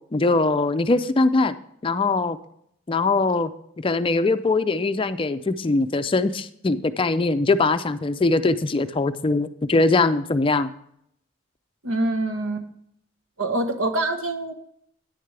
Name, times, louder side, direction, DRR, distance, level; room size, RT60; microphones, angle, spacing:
voice 1, 0.1-1.5 1.8-2.4 2.9-3.5 3.8-10.7, left 3 dB, 25° left, 11 dB, 0.4 m, -21 dB
voice 2, 11.8-12.7 13.4-14.5, right 2 dB, 80° right, 6 dB, 1.3 m, -25 dB
10.0 x 9.5 x 3.3 m, 0.71 s
head